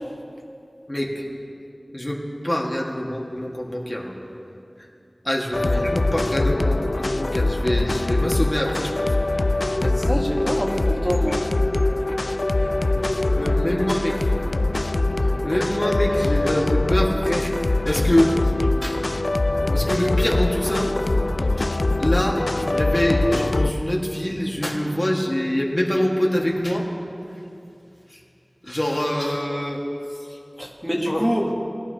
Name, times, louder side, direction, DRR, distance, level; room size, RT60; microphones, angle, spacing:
voice 1, 1.9-4.1 5.2-9.1 11.3-11.4 13.3-14.2 15.2-17.5 17.8-18.3 18.8-19.0 19.7-20.9 21.4-26.8 28.6-29.8 31.1-31.3, equal, 30° left, -2 dB, 1.7 m, -25 dB
sound 1, 5.5-23.7, left 2 dB, 75° left, 0.4 m, -23 dB
voice 2, 9.8-11.4 30.6-31.5, equal, 10° right, -2 dB, 1.3 m, -25 dB
20.5 x 12.0 x 2.9 m, 2.6 s
wide cardioid pair, 50°, 0 cm